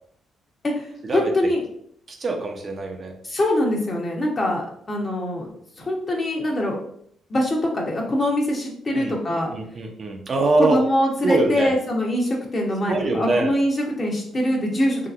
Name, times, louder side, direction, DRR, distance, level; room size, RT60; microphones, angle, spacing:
voice 1, 0.6-1.6 3.2-5.5 5.8-6.8 7.3-9.5 10.6-15.1, left 1 dB, 35° left, 0 dB, 0.9 m, -23 dB
voice 2, 2.1-3.1 8.9-10.8 11.2-11.7 12.9-13.5, right 2 dB, 40° right, 2 dB, 0.6 m, -23 dB
3.2 x 2.8 x 2.5 m, 0.65 s
cardioid pair, 90°, 0 cm